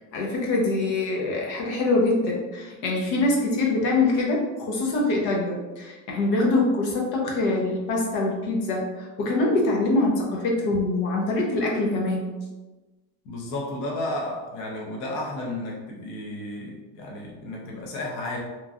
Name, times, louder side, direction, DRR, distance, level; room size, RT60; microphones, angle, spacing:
voice 1, 0.1-12.3, left 2 dB, 85° left, -1 dB, 0.9 m, -24 dB
voice 2, 13.2-18.4, left 1 dB, 40° left, -2 dB, 0.6 m, -33 dB
3.0 x 2.5 x 2.4 m, 1.2 s
cardioid pair, 170°, 41 cm